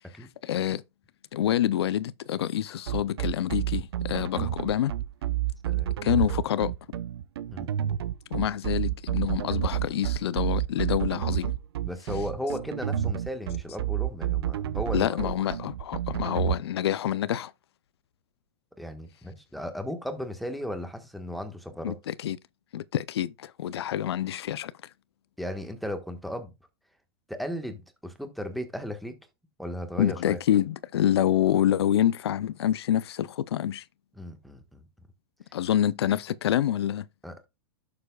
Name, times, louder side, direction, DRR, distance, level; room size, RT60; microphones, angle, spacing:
voice 1, 0.4-0.8 1.3-4.9 6.0-6.7 8.3-11.5 14.9-17.5 21.8-22.4 22.7-24.7 30.0-33.8 35.5-37.0, left 11 dB, 85° left, 0.6 m, -27 dB
sound 1, 2.9-16.6, right 12 dB, 80° right, 0.8 m, -29 dB
voice 2, 11.8-15.3 18.8-22.0 25.4-26.5 27.3-29.2 29.6-30.4 34.1-34.9 37.2-37.4, left 1 dB, ahead, 1.4 m, -35 dB
11.5 x 7.0 x 2.3 m
supercardioid pair, 135°, 13 cm